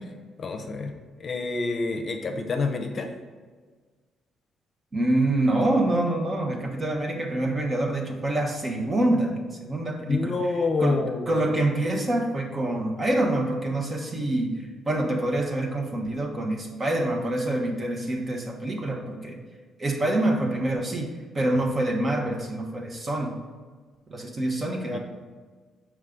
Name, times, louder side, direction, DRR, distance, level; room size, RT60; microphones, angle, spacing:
voice 1, 0.4-0.9 1.2-3.1 10.0-11.4 24.9-25.0, left 3 dB, 45° left, 5 dB, 0.7 m, -27 dB
voice 2, 4.9-9.3 9.6-10.3 10.8-19.4 19.8-21.1 21.3-23.3 24.1-25.0, right 1 dB, 35° right, 2 dB, 1.1 m, -26 dB
6.5 x 4.8 x 3.7 m, 1.5 s
cardioid pair, 90°, 0 cm